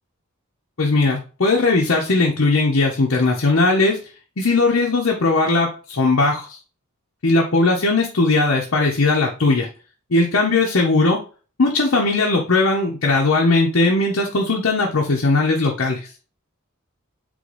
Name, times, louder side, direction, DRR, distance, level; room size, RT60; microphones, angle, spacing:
voice 1, 0.8-4.0 4.4-6.6 7.2-9.7 10.1-11.2 11.6-16.0, left 3 dB, 65° left, -1 dB, 0.8 m, -18 dB
3.9 x 3.5 x 3.3 m, 0.35 s
head